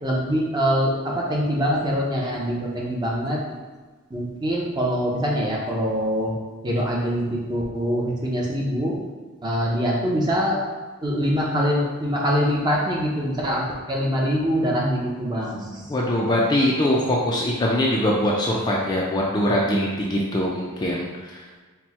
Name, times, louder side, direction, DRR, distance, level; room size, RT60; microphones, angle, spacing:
voice 1, 0.0-3.4 4.1-6.3 6.6-9.0 9.4-10.6 11.0-15.8, equal, 20° right, -3 dB, 0.6 m, -24 dB
voice 2, 15.9-21.5, left 1 dB, 20° left, -3 dB, 0.4 m, -22 dB
4.3 x 2.1 x 4.2 m, 1.4 s
head